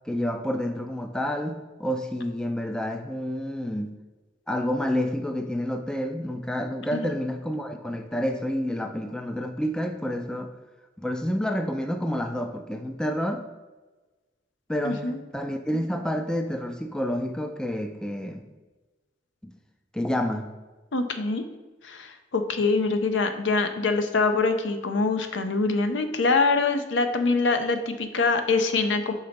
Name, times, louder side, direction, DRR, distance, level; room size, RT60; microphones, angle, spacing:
voice 1, 0.1-3.9 4.5-10.5 11.0-13.4 14.7-18.4 19.4-19.5 19.9-20.5, equal, 5° left, 6 dB, 0.3 m, -29 dB
voice 2, 14.8-15.2 20.9-21.4 21.8-29.1, left 3 dB, 70° left, 8 dB, 0.6 m, -24 dB
5.6 x 3.9 x 5.1 m, 1.2 s
head